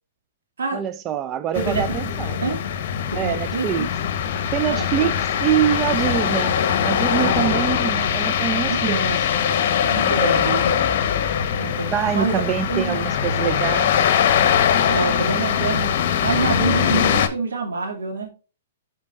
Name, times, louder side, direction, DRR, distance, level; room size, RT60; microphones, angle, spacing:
voice 1, 0.7-2.4 3.1-3.9 4.5-9.1 9.4-9.5 10.0-10.7 11.9-13.9, right 10 dB, 25° right, 0.3 m, -25 dB
sound 1, 1.5-17.3, left 8 dB, 55° left, 0.9 m, -22 dB
voice 2, 1.5-2.6 3.2-3.9 4.7-5.2 7.2-7.4 8.6-9.2 9.8-10.7 11.6-12.4 12.7-13.1 14.8-18.3, right 4 dB, 85° right, 2.4 m, -27 dB
sound 2, 2.2-3.2 4.6-4.9 5.2-5.3 6.6-7.5, left 7 dB, 75° left, 0.6 m, -34 dB
11.5 x 4.5 x 2.4 m
hypercardioid pair, 135°, 0 cm